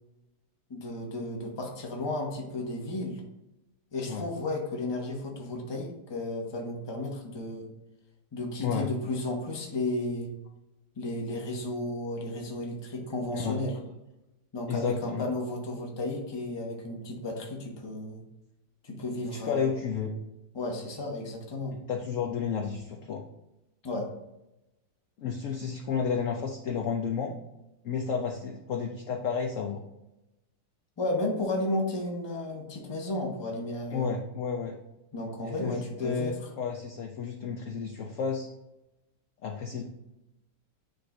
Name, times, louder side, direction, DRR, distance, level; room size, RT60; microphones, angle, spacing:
voice 1, 0.7-3.2 3.9-7.7 8.3-10.3 11.0-13.7 14.5-18.2 18.8-19.7 20.5-21.8 23.8-24.1 31.0-34.1 35.1-36.3, left 2 dB, 20° left, 0 dB, 0.7 m, -33 dB
voice 2, 14.7-15.3 19.3-20.1 21.7-23.2 25.2-27.3 27.8-29.8 33.9-34.8 35.4-38.5 39.4-39.8, left 6 dB, 70° left, 2 dB, 0.7 m, -32 dB
9.2 x 3.2 x 3.8 m, 0.95 s
omnidirectional pair, 1.9 m